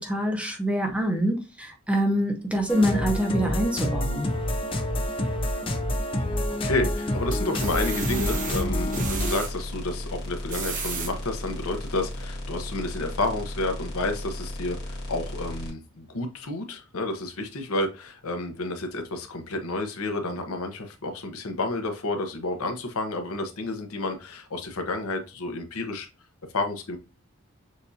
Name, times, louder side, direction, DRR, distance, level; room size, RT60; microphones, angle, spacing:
voice 1, 0.0-4.3, equal, 5° right, 0.8 m, -25 dB
sound 1, 2.7-9.4, left 1 dB, 25° left, 0.5 m, -28 dB
sound 2, 6.2-6.8 7.3-9.5 10.3-11.1 11.7-11.8 12.2-12.3, right 6 dB, 35° right, 0.8 m, -34 dB
voice 2, 6.6-26.1 26.5-27.0, left 2 dB, 80° left, 0.9 m, -30 dB
sound 3, 7.7-15.7, left 1 dB, 45° left, 1.4 m, -35 dB
6.6 x 2.6 x 2.7 m
head